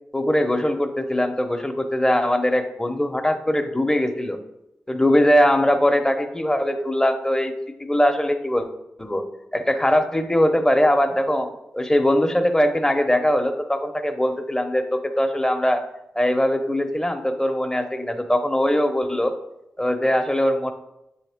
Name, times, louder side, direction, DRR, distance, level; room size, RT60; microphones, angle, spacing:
voice 1, 0.1-4.4 4.9-7.5 7.8-8.7 9.0-9.2 9.5-11.5 11.7-15.8 16.2-19.3 19.8-20.7, left 1 dB, 15° left, 6 dB, 0.8 m, -21 dB
8.0 x 3.5 x 3.5 m, 0.88 s
cardioid pair, 40°, 4 cm